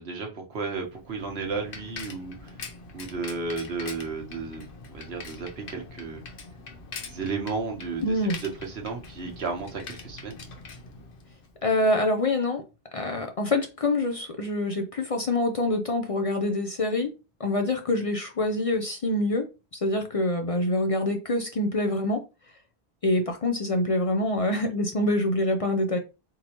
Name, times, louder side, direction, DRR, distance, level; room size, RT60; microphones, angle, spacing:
voice 1, 0.0-2.6 2.9-4.7 4.9-6.2 7.1-10.4, right 4 dB, 80° right, 1.4 m, -33 dB
Bicycle, 0.7-11.6, left 4 dB, 60° left, 1.0 m, -43 dB
voice 2, 8.0-8.4 11.6-12.6 12.9-17.1 17.4-19.5 19.8-22.2 23.0-26.0, left 1 dB, 40° left, 0.5 m, -25 dB
4.1 x 3.7 x 2.9 m
omnidirectional pair, 1.0 m